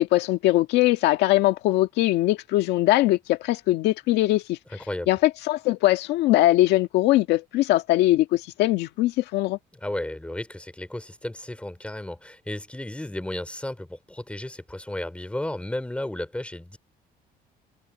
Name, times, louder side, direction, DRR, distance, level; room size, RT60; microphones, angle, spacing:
voice 1, 0.0-4.6 5.1-9.6, left 16 dB, 90° left, 1.6 m, -21 dB
voice 2, 4.7-5.1 9.8-16.8, left 1 dB, 5° left, 3.8 m, -33 dB
cardioid pair, 110°, 17 cm